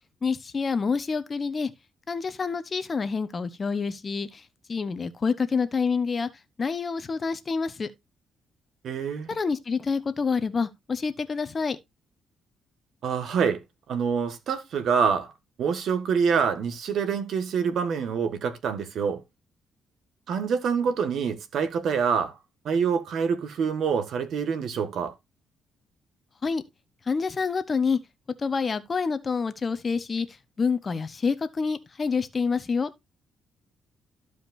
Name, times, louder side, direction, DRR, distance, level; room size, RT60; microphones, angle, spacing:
voice 1, 0.2-1.7 2.1-6.3 6.6-7.9 9.3-11.8 26.4-26.6 27.1-28.0 28.4-32.9, left 5 dB, 35° left, 0.9 m, -27 dB
voice 2, 8.8-9.3 13.0-15.3 15.6-19.2 20.3-22.4 22.6-25.1, right 6 dB, 70° right, 1.6 m, -26 dB
14.0 x 5.1 x 2.6 m
cardioid pair, 90°, 0 cm